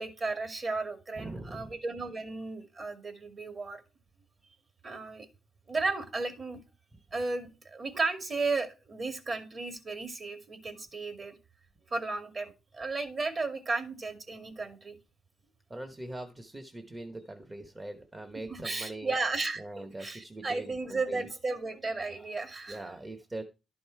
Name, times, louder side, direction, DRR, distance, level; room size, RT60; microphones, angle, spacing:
voice 1, 0.0-3.8 4.8-5.3 5.7-6.6 7.1-11.3 11.9-15.0 18.3-22.8, right 3 dB, 40° right, 6 dB, 2.2 m, -34 dB
voice 2, 1.2-1.7 15.7-19.1 19.6-21.2 22.7-23.4, right 2 dB, 20° right, 6 dB, 1.1 m, -42 dB
11.5 x 5.3 x 4.6 m, 0.30 s
cardioid pair, 90°, 0 cm